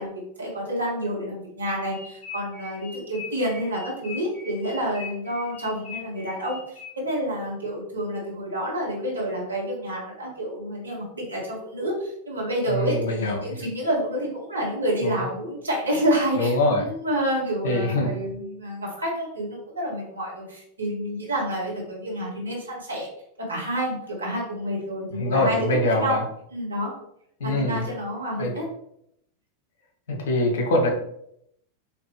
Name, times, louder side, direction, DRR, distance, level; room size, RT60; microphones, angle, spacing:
voice 1, 0.0-23.1 23.5-26.2 26.5-26.9 27.4-28.7, equal, 75° right, -3 dB, 1.4 m, -28 dB
sound 1, 1.9-7.2, left 5 dB, 35° left, 1.4 m, -41 dB
voice 2, 12.7-13.5 16.4-16.9 17.6-18.1 25.2-26.2 27.4-27.9 28.4-28.5 30.1-30.9, left 1 dB, 60° left, 1 dB, 1.0 m, -23 dB
4.3 x 2.9 x 3.2 m, 0.73 s
figure-of-eight pair, 90°, 0 cm